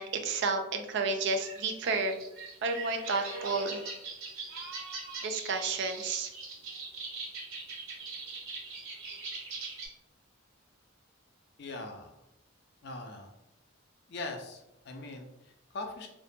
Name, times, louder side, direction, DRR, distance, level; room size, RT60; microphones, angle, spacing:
voice 1, 0.0-2.2 2.6-3.8 5.2-6.3, right 3 dB, 55° right, 6 dB, 0.3 m, -31 dB
sound 1, 1.3-9.9, right 3 dB, 70° right, 0.7 m, -42 dB
voice 2, 11.6-12.2 12.8-13.3 14.1-16.1, left 2 dB, 50° left, 3 dB, 0.4 m, -41 dB
2.6 x 2.1 x 2.5 m, 0.87 s
head